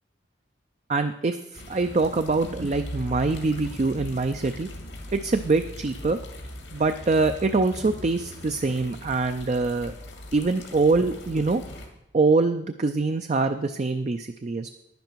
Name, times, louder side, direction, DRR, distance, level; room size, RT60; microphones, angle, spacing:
voice 1, 0.9-4.7 5.1-6.2 6.7-9.9 10.3-11.6 12.1-14.7, right 3 dB, 40° right, 8 dB, 0.4 m, -24 dB
sound 1, 1.5-11.9, left 1 dB, 85° left, 2.3 m, -40 dB
11.0 x 10.5 x 4.6 m, 0.87 s
head